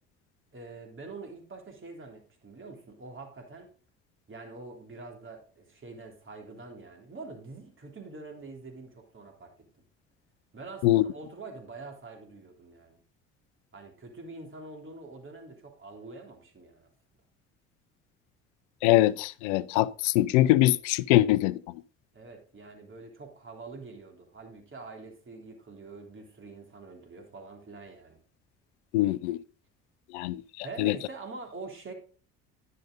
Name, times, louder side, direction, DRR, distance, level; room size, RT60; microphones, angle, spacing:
voice 1, 0.5-3.7 4.3-9.7 10.5-13.0 13.7-16.9 22.1-28.2 30.6-31.9, right 3 dB, 35° right, 3.3 m, -45 dB
voice 2, 18.8-21.6 28.9-29.4 30.1-30.4 30.8-30.9, left 16 dB, 85° left, 0.5 m, -23 dB
10.5 x 6.8 x 3.9 m
hypercardioid pair, 65°, 34 cm